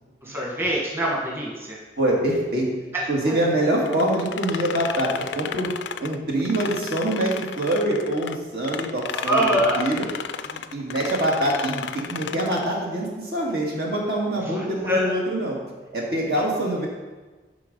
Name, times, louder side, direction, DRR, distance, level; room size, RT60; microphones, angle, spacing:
voice 1, 0.2-1.8 3.3-3.4 9.1-9.8 14.5-15.1, equal, 15° right, -4 dB, 1.4 m, -24 dB
voice 2, 2.0-2.7 3.1-5.7 6.0-10.1 10.4-15.6 15.9-16.9, right 1 dB, 65° right, -2 dB, 1.8 m, -25 dB
sound 1, 3.9-8.4 8.6-12.7, left 7 dB, 85° left, 0.4 m, -33 dB
11.0 x 4.0 x 5.3 m, 1.3 s
head